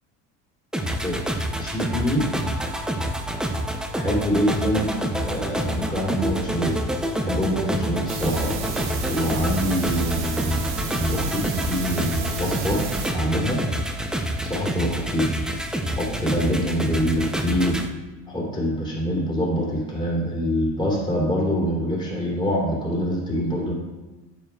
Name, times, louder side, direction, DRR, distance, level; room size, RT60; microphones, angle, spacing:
sound 1, 0.7-17.9, right 1 dB, ahead, 0.5 m, -27 dB
voice 1, 1.6-2.3 4.0-4.9 5.2-6.7 7.2-8.5 9.1-12.8 13.1-13.6 14.4-15.3 15.9-17.8 18.3-23.7, equal, 15° left, -4 dB, 3.0 m, -25 dB
sound 2, 8.1-13.1, right 4 dB, 65° right, 1.6 m, -31 dB
10.0 x 9.3 x 2.3 m, 1.1 s
cardioid pair, 135°, 33 cm